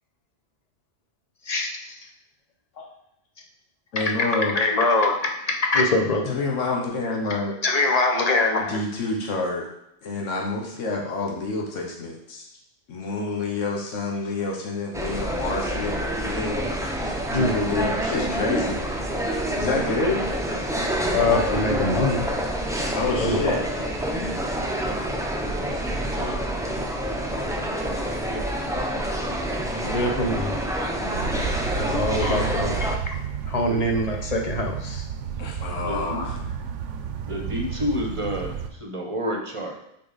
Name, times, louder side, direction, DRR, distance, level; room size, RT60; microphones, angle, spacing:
voice 1, 3.9-4.6 6.3-7.5 8.7-9.7 10.0-12.5 12.9-16.7 17.0-18.8 19.5-20.2 22.9-23.6 26.1-26.4 27.4-27.9 32.2-32.4 35.4-36.4, left 3 dB, 85° left, -1 dB, 1.3 m, -28 dB
voice 2, 4.5-6.3 7.6-8.8 17.3-17.6 21.1-22.2 23.2-23.5 26.1-26.4 28.3-28.4 29.8-30.6 31.7-33.2 33.5-35.0, left 2 dB, 35° left, 2 dB, 0.8 m, -23 dB
sound 1, 14.9-33.0, right 1 dB, 5° right, 0.4 m, -27 dB
sound 2, 31.1-38.7, right 7 dB, 80° right, 0.9 m, -32 dB
voice 3, 35.8-36.2 37.3-39.7, equal, 30° right, 1 dB, 0.9 m, -29 dB
6.6 x 4.0 x 4.0 m, 0.79 s
omnidirectional pair, 1.3 m